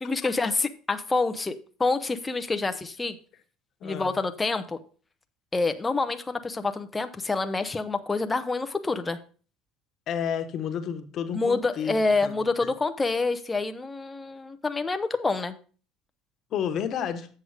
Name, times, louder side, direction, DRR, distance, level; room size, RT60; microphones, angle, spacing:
voice 1, 0.0-3.2 3.8-4.8 5.5-9.2 11.3-15.5, left 3 dB, 15° left, 9 dB, 0.6 m, -27 dB
voice 2, 3.8-4.1 10.1-12.0 12.2-12.4 12.6-12.7 16.5-17.3, left 8 dB, 50° left, 7 dB, 1.2 m, -31 dB
7.9 x 6.6 x 4.9 m, 0.40 s
cardioid pair, 115°, 0 cm